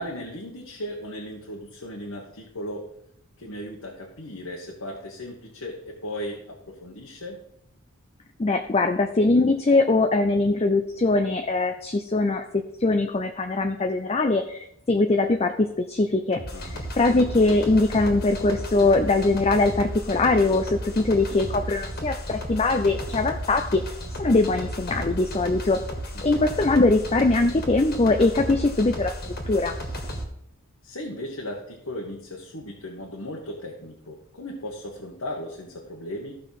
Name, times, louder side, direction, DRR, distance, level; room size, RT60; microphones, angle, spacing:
voice 1, 0.0-2.9 3.4-7.4 16.5-16.8 26.1-26.4 30.8-36.3, equal, 75° left, -1 dB, 1.4 m, -36 dB
voice 2, 8.4-12.5 12.8-23.8 24.2-25.8 26.2-29.1 29.5-29.8, left 2 dB, 30° left, 7 dB, 0.5 m, -22 dB
sound 1, 16.3-30.2, equal, 45° left, 1.9 m, -34 dB
14.5 x 5.6 x 4.1 m, 0.76 s
head